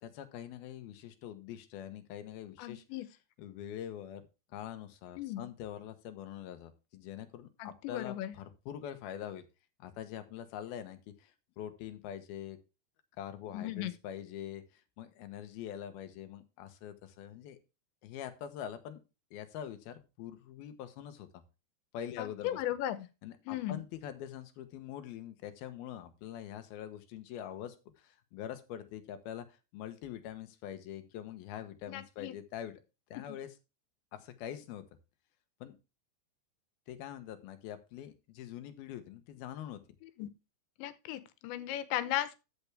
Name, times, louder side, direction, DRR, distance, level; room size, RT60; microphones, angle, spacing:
voice 1, 0.0-2.8 3.4-4.2 4.5-9.4 9.8-12.6 13.2-14.6 15.0-17.6 18.0-19.0 19.3-21.3 21.9-22.6 23.2-32.8 33.1-33.5 34.2-34.8 35.6-35.8 36.9-39.8, left 10 dB, 70° left, 2.7 m, -44 dB
voice 2, 2.6-3.1 5.2-5.5 7.6-8.4 13.5-13.9 22.2-23.1 23.5-23.8 31.9-32.4 40.0-40.3 40.8-42.4, left 13 dB, 90° left, 3.3 m, -36 dB
13.0 x 6.9 x 3.4 m
omnidirectional pair, 5.0 m